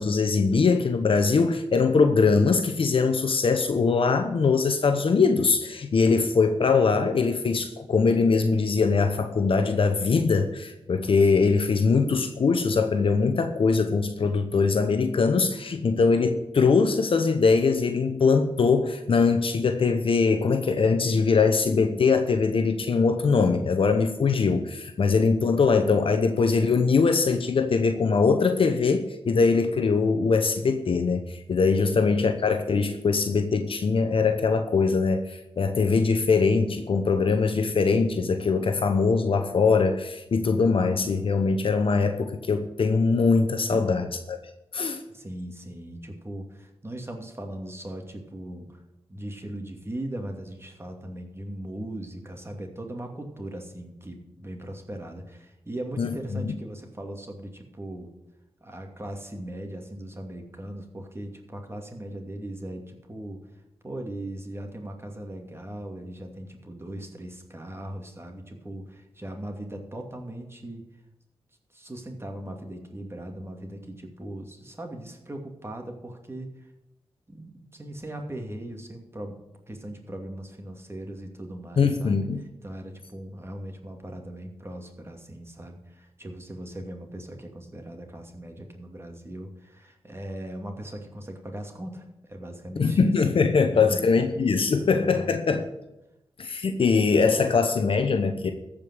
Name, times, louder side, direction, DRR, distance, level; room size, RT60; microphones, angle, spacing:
voice 1, 0.0-44.4 44.7-45.0 56.0-56.6 81.8-82.4 92.8-95.6 96.4-98.5, left 4 dB, 60° left, 7 dB, 0.9 m, -22 dB
voice 2, 45.1-48.8 49.1-58.1 58.6-63.4 63.8-70.9 71.7-76.7 77.3-79.4 79.7-82.3 82.6-93.3 93.6-94.0 94.7-95.4, right 1 dB, 25° right, 3 dB, 2.6 m, -39 dB
14.0 x 5.2 x 8.2 m, 0.94 s
supercardioid pair, 40°, 10 cm